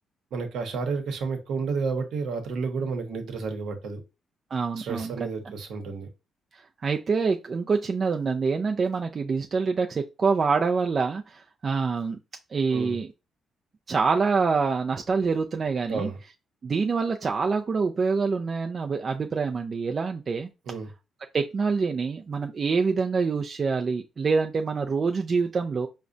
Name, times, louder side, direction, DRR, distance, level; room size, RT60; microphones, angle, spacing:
voice 1, 0.3-4.0 4.8-6.1 12.7-13.0 15.9-16.2 20.7-20.9, right 4 dB, 75° right, 4 dB, 0.9 m, -31 dB
voice 2, 4.5-5.1 6.8-12.2 12.5-13.1 13.9-16.1 16.6-20.5 21.3-25.9, right 4 dB, 40° right, 3 dB, 0.3 m, -26 dB
4.7 x 2.1 x 2.6 m, 0.27 s
cardioid pair, 90°, 0 cm